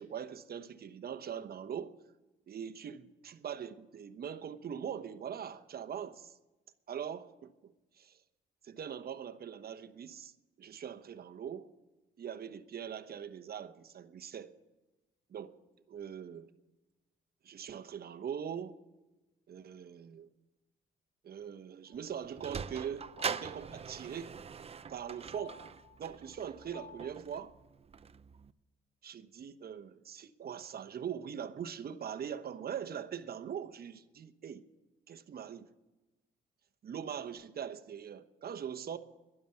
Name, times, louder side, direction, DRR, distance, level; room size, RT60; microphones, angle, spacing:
voice 1, 0.0-1.9 2.5-6.4 6.9-8.2 8.6-10.3 10.6-11.7 12.2-14.5 15.3-15.6 15.9-16.5 17.4-18.8 19.5-20.3 21.2-24.3 24.9-25.6 26.0-27.6 29.0-34.7 35.1-35.7 36.8-39.0, right 8 dB, 50° right, 1.0 m, -42 dB
sound 1, 21.9-27.2, left 4 dB, 25° left, 2.2 m, -56 dB
Sliding door, 21.9-28.5, right 6 dB, 30° right, 0.6 m, -43 dB
12.5 x 11.0 x 9.0 m
cardioid pair, 90°, 20 cm